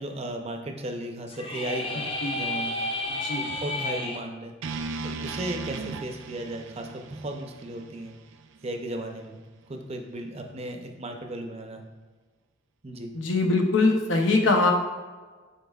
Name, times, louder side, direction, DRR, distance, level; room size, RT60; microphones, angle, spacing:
voice 1, 0.0-2.1 2.3-2.9 3.4-4.5 5.0-8.1 8.6-9.4 9.7-11.8 12.8-13.1, right 1 dB, 35° right, 3 dB, 0.6 m, -35 dB
sound 1, 1.3-4.2, left 2 dB, 30° left, 0.7 m, -31 dB
voice 2, 3.1-3.5 13.1-14.7, left 3 dB, 80° left, 3 dB, 0.8 m, -22 dB
sound 2, 4.6-8.8, right 4 dB, 80° right, 0.4 m, -37 dB
9.1 x 4.3 x 2.4 m, 1.4 s
head